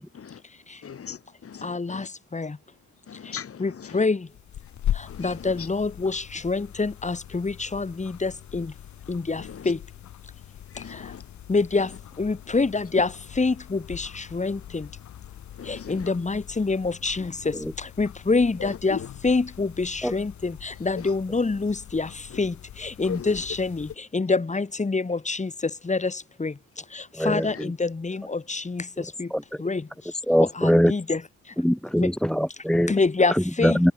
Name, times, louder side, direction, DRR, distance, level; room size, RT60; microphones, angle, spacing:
voice 1, 0.8-2.1 3.1-4.0 5.1-5.7 9.4-9.7 10.7-11.3 15.5-16.1 18.6-19.1 21.0-21.1 22.3-22.4 23.1-23.4 27.3-27.7, left 7 dB, 50° left, 4.2 m, -38 dB
voice 2, 1.6-2.0 2.3-2.6 3.6-4.2 5.2-8.7 9.1-9.8 11.5-11.9 12.2-13.1 13.4-14.8 15.7-17.3 18.0-19.0 19.2-22.1 22.4-22.5 22.8-23.9 24.1-25.5 25.9-26.1 26.4-26.5 27.2-28.8 29.2-29.3 29.6-29.8 30.4-31.2 32.0-32.1 32.9-33.9, left 3 dB, 25° left, 4.8 m, -26 dB
sound 1, 4.3-24.0, left 11 dB, 70° left, 4.3 m, -40 dB
voice 3, 27.2-27.7 29.3-29.4 30.3-30.9 31.6-32.9 33.6-33.9, equal, ahead, 0.9 m, -22 dB
open air
cardioid pair, 90°, 30 cm